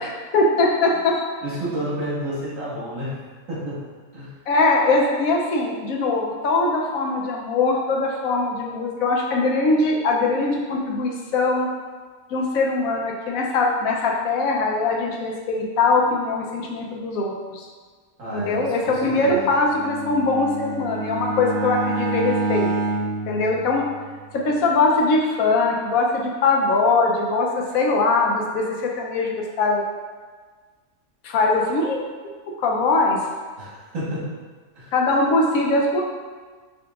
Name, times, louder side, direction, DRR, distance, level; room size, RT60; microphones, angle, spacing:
voice 1, 0.3-1.2 4.5-11.7 12.3-17.7 18.3-22.7 23.3-23.8 24.3-27.5 27.7-28.6 29.0-29.3 29.6-29.8 31.2-32.0 32.6-33.2 34.9-36.1, left 3 dB, 75° left, -1 dB, 1.0 m, -21 dB
voice 2, 1.4-3.2 3.5-3.8 4.1-4.3 18.2-19.5 33.6-34.3 34.8-34.9, right 1 dB, 65° right, -7 dB, 1.7 m, -30 dB
Bowed string instrument, 19.6-24.2, right 2 dB, 85° right, 1.1 m, -27 dB
6.1 x 2.8 x 2.4 m, 1.5 s
omnidirectional pair, 1.5 m